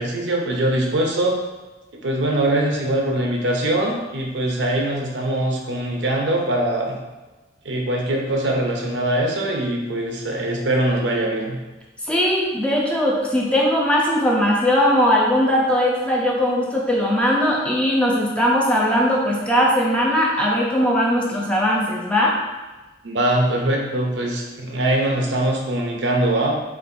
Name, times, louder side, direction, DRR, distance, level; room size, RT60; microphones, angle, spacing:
voice 1, 0.0-1.4 2.0-7.0 7.6-11.6 23.0-26.5, right 1 dB, 75° right, 0 dB, 0.7 m, -22 dB
voice 2, 12.1-22.4, equal, 5° left, -3 dB, 0.5 m, -19 dB
4.4 x 3.1 x 2.6 m, 1.1 s
head